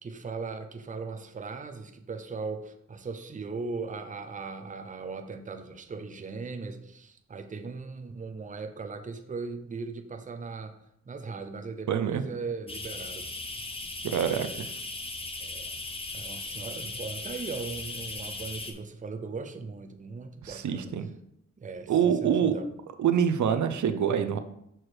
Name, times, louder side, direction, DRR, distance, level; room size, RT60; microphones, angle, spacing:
voice 1, 0.0-10.8 11.1-13.3 15.4-15.8 16.1-20.9 21.6-22.7, right 4 dB, 25° right, 7 dB, 0.6 m, -38 dB
voice 2, 11.9-12.2 14.0-14.7 20.4-21.1 21.9-22.5 23.0-24.4, right 8 dB, 80° right, 9 dB, 0.6 m, -25 dB
sound 1, 12.7-18.7, left 2 dB, 20° left, 0.7 m, -38 dB
6.3 x 4.5 x 4.7 m, 0.75 s
wide cardioid pair, 135°, 29 cm